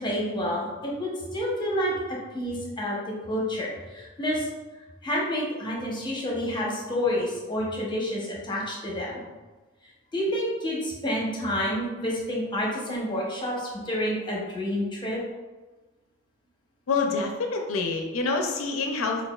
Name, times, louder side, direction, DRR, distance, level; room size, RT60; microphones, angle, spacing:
voice 1, 0.0-1.9 2.3-3.0 3.3-4.5 5.0-9.2 10.1-15.2, equal, 20° left, -4 dB, 0.8 m, -29 dB
voice 2, 16.9-19.3, left 4 dB, 70° left, 3 dB, 0.5 m, -27 dB
6.3 x 2.4 x 2.3 m, 1.2 s
head